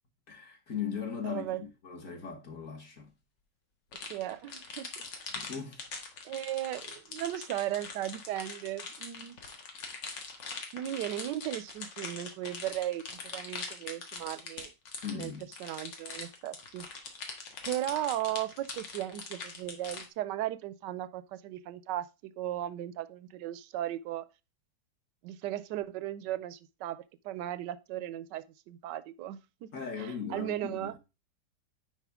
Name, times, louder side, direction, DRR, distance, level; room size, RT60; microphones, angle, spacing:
voice 1, 0.3-3.1 5.3-5.8 15.0-15.4 29.7-31.0, left 7 dB, 50° left, 1.6 m, -38 dB
voice 2, 1.2-1.6 4.1-4.9 6.2-9.4 10.7-14.7 15.1-15.3 15.6-16.9 17.6-24.2 25.2-29.7 30.0-31.0, right 13 dB, 80° right, 1.2 m, -36 dB
Water Bottle Crackling, 3.9-20.1, left 4 dB, 90° left, 2.1 m, -42 dB
10.0 x 4.2 x 3.5 m
omnidirectional pair, 1.9 m